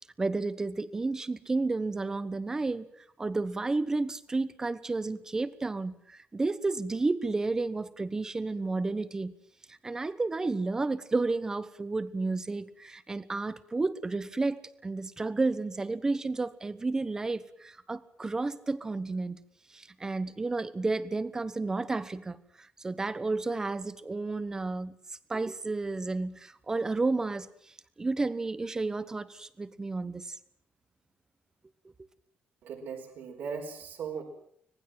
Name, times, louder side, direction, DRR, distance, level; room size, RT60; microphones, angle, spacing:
voice 1, 0.2-2.9 3.2-9.3 9.7-19.4 19.7-25.0 25.3-27.5 28.0-30.3, right 3 dB, 15° right, 1.1 m, -31 dB
voice 2, 32.6-34.2, right 6 dB, 70° right, 4.7 m, -38 dB
25.5 x 19.0 x 7.7 m
cardioid pair, 165°, 4 cm